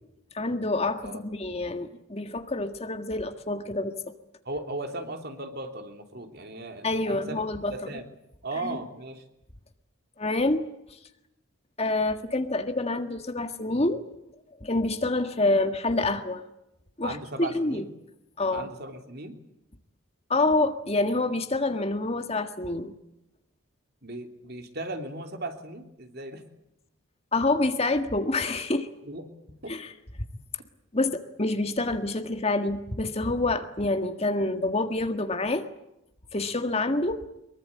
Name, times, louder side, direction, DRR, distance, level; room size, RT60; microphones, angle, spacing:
voice 1, 0.3-4.0 6.8-7.7 8.6-8.8 10.2-10.7 11.8-14.0 14.6-16.4 17.0-17.8 18.4-18.7 20.3-22.9 27.3-28.9 29.7-29.9 30.9-35.6 36.3-37.3, left 2 dB, 30° left, 8 dB, 1.7 m, -27 dB
voice 2, 4.4-7.4 7.7-8.1 8.4-9.2 17.0-17.9 18.5-19.3 24.0-26.4 29.0-29.3 29.6-29.8, right 2 dB, 50° right, 6 dB, 3.3 m, -37 dB
24.0 x 23.0 x 8.7 m, 0.85 s
head